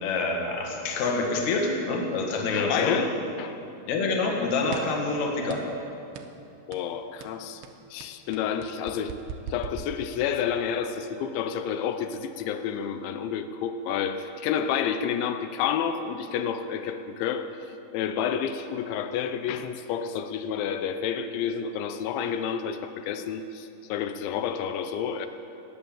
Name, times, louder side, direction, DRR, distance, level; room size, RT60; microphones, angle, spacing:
voice 1, 0.0-3.0 3.9-5.6, left 3 dB, 55° left, 1 dB, 2.5 m, -26 dB
voice 2, 2.5-3.6 6.7-7.6 7.9-9.2 9.5-17.5 17.9-25.3, left 8 dB, 85° left, 9 dB, 3.0 m, -30 dB
sound 1, 4.7-5.1 5.5-5.8 6.1-6.4 6.7-6.9 7.2-10.5, right 7 dB, 80° right, 2.9 m, -40 dB
19.5 x 7.0 x 8.8 m, 2.8 s
omnidirectional pair, 5.2 m